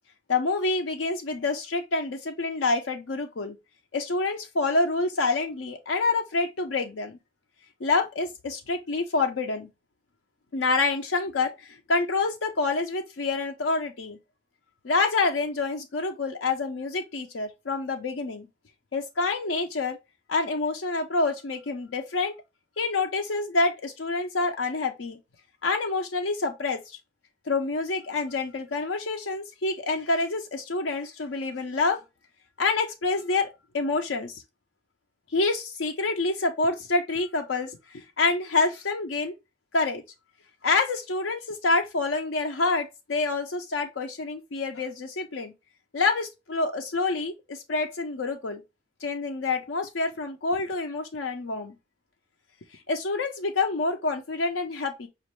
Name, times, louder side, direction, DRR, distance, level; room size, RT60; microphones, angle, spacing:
voice 1, 0.3-3.6 3.9-7.2 7.8-9.7 10.5-14.2 14.8-18.5 18.9-20.0 20.3-22.3 22.8-25.2 25.6-27.0 27.5-32.0 32.6-33.5 33.7-34.4 35.3-39.3 39.7-40.0 40.6-45.5 45.9-48.6 49.0-51.7 52.9-55.1, left 3 dB, 70° left, 0.6 m, -27 dB
5.1 x 2.5 x 3.0 m
head